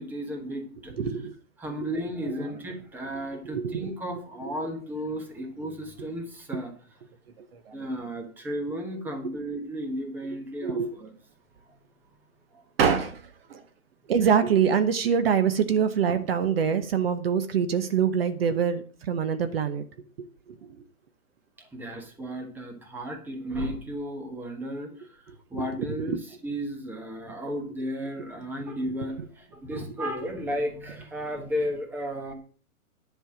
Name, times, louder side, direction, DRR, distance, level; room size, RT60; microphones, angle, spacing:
voice 1, 0.0-0.9 1.6-6.7 7.7-11.1 21.7-25.2 25.5-26.2 26.4-32.3, equal, 5° right, 3 dB, 1.2 m, -34 dB
voice 2, 1.0-1.3 1.8-1.9 2.2-2.4 2.7-2.8 3.4-3.9 4.4-4.5 6.5-6.6 7.4-7.8 10.6-10.9 12.8-13.6 14.1-19.8 20.2-20.8 25.3-26.2, right 7 dB, 40° right, 10 dB, 1.0 m, -25 dB
10.5 x 5.6 x 7.4 m, 0.43 s
hypercardioid pair, 155°, 44 cm